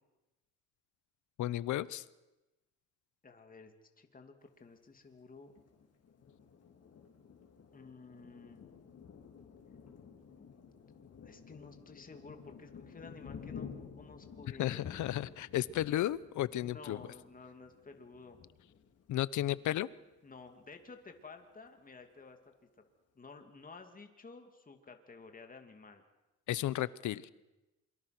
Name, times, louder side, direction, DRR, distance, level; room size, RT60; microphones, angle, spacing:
voice 1, 1.4-2.0 14.6-17.0 19.1-19.9 26.5-27.2, left 13 dB, 75° left, 19 dB, 0.9 m, -33 dB
voice 2, 3.2-5.5 7.7-8.6 10.4-10.5 11.2-13.7 14.0-14.8 16.6-18.4 20.2-22.4 23.1-26.0 26.8-26.9, left 4 dB, 30° left, 5 dB, 2.8 m, -53 dB
Thunder, 5.5-19.9 20.3-20.5 20.8-21.4, left 6 dB, 55° left, 4.6 m, -52 dB
27.5 x 23.5 x 6.1 m, 1.0 s
cardioid pair, 90°, 30 cm